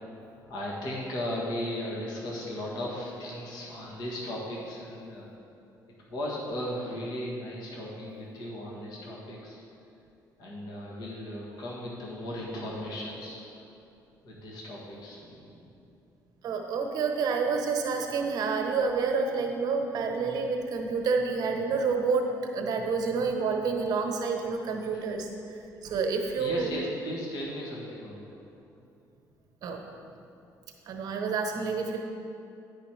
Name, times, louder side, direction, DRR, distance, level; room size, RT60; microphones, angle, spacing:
voice 1, 0.1-5.3 6.1-9.6 10.4-13.4 14.2-15.6 26.4-28.3 29.9-30.0, left 1 dB, 70° left, -4 dB, 1.7 m, -36 dB
voice 2, 16.4-26.8 29.6-29.9 30.9-32.0, right 4 dB, 60° right, 3 dB, 0.9 m, -29 dB
10.0 x 5.1 x 4.5 m, 2.7 s
cardioid pair, 140°, 7 cm